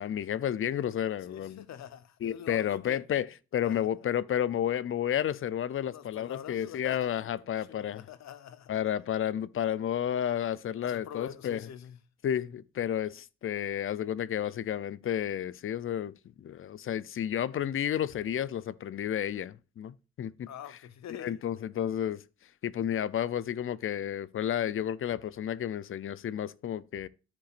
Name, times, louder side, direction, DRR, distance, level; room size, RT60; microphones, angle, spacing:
voice 1, 0.0-1.6 2.2-3.3 3.5-8.0 8.7-11.6 12.2-20.5 21.2-22.2 22.6-27.1, left 10 dB, 45° left, 0.5 m, -31 dB
voice 2, 1.2-3.0 3.6-3.9 5.9-8.8 10.8-12.0 20.5-21.4, left 9 dB, 65° left, 0.9 m, -45 dB
13.5 x 5.1 x 2.5 m
cardioid pair, 90°, 30 cm